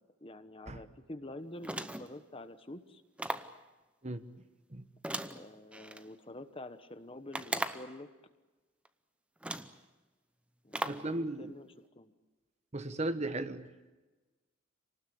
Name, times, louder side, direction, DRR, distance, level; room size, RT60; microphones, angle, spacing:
voice 1, 0.0-3.0 5.3-8.1 10.6-11.7 12.0-12.1, left 1 dB, 25° left, 10 dB, 1.1 m, -47 dB
sound 1, 1.6-2.2 3.2-3.6 5.0-6.0 7.3-8.0 8.9-9.0 9.4-9.8 10.7-11.1, right 1 dB, 5° right, 0.7 m, -38 dB
voice 2, 10.8-11.5 12.7-13.9, right 2 dB, 30° right, 10 dB, 1.1 m, -36 dB
28.0 x 19.0 x 8.6 m, 1.2 s
head